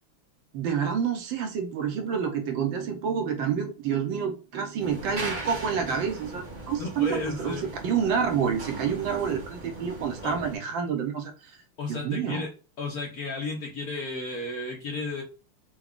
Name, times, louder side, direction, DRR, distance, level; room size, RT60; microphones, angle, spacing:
voice 1, 0.5-11.6 11.9-12.5, right 7 dB, 70° right, 1.4 m, -28 dB
sound 1, 4.8-10.6, right 2 dB, 40° right, 0.6 m, -39 dB
voice 2, 6.8-7.7 10.2-10.4 11.8-12.5 12.8-15.2, left 3 dB, 60° left, 1.0 m, -33 dB
4.7 x 2.3 x 3.5 m
omnidirectional pair, 2.3 m